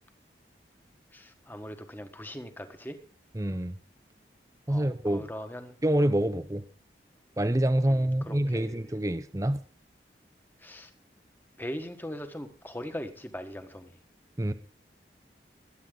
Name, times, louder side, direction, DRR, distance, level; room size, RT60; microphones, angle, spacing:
voice 1, 1.1-3.0 4.7-5.8 7.9-8.8 10.6-10.9 11.6-14.0, equal, 10° left, 1.4 m, -40 dB
voice 2, 3.3-3.8 4.7-5.3 5.8-6.7 7.4-9.6 14.4-14.5, right 1 dB, 20° right, 0.6 m, -26 dB
21.5 x 9.4 x 3.9 m
head